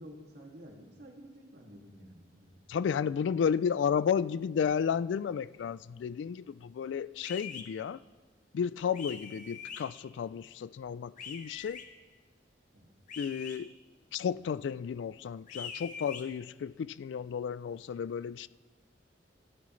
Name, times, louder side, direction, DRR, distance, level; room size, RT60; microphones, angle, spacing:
voice 1, 0.0-2.6 12.7-12.9, equal, 65° right, 2.2 m, -51 dB
voice 2, 2.7-8.0 8.5-11.8 13.2-13.7 14.1-18.5, left 7 dB, 85° left, 0.3 m, -32 dB
sound 1, 7.2-7.6 8.9-9.8 11.2-11.8 13.1-13.6 15.5-16.2, left 6 dB, 50° left, 1.3 m, -43 dB
27.5 x 11.0 x 3.2 m
head